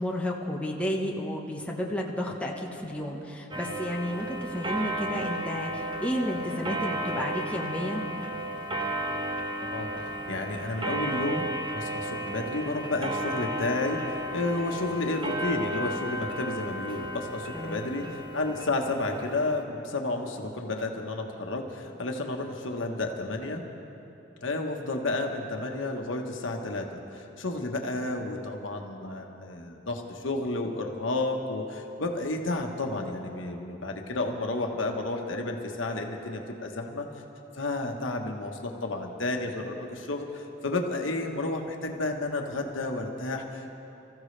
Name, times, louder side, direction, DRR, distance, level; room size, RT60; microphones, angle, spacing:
voice 1, 0.0-8.0 17.5-17.8, equal, 5° left, -2 dB, 1.2 m, -32 dB
Clock, 3.5-19.6, right 1 dB, 25° right, 0.9 m, -34 dB
voice 2, 9.6-11.4 11.7-23.6 24.4-37.1 37.5-43.8, left 2 dB, 80° left, 3 dB, 1.3 m, -31 dB
25.5 x 14.5 x 3.3 m, 2.9 s
head